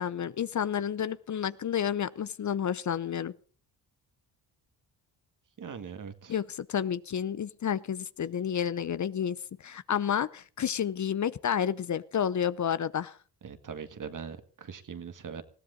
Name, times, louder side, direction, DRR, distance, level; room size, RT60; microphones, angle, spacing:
voice 1, 0.0-3.3 6.3-9.4 9.6-13.2, left 8 dB, 45° left, 17 dB, 0.8 m, -30 dB
voice 2, 5.6-6.4 13.4-15.4, right 6 dB, 50° right, 9 dB, 1.9 m, -41 dB
20.5 x 15.0 x 3.9 m, 0.40 s
cardioid pair, 70°, 39 cm